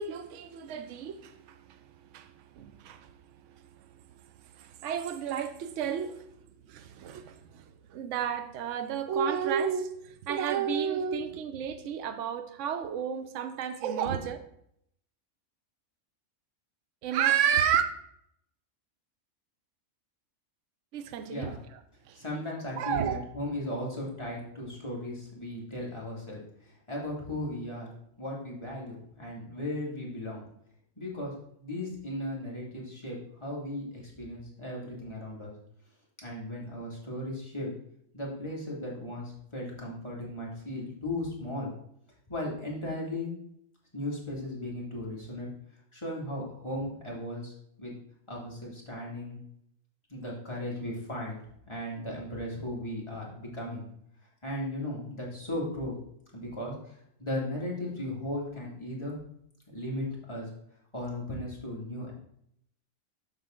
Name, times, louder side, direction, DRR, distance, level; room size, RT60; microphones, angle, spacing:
voice 1, 0.0-1.9 2.1-3.1 3.5-6.2 6.7-14.4 17.0-17.8 20.9-21.5 22.1-22.2 22.8-23.2, right 8 dB, 65° right, 9 dB, 1.0 m, -31 dB
voice 2, 21.3-21.6 22.1-27.9 28.2-30.4 31.0-31.3 31.6-35.5 36.2-37.7 38.1-41.7 42.3-43.3 43.9-45.5 45.9-47.5 47.8-47.9 48.3-49.4 50.1-51.4 51.7-53.8 54.4-55.9 56.3-59.2 59.7-60.5 60.9-62.1, left 1 dB, 20° left, -5 dB, 2.0 m, -36 dB
7.4 x 5.8 x 3.6 m, 0.73 s
omnidirectional pair, 1.4 m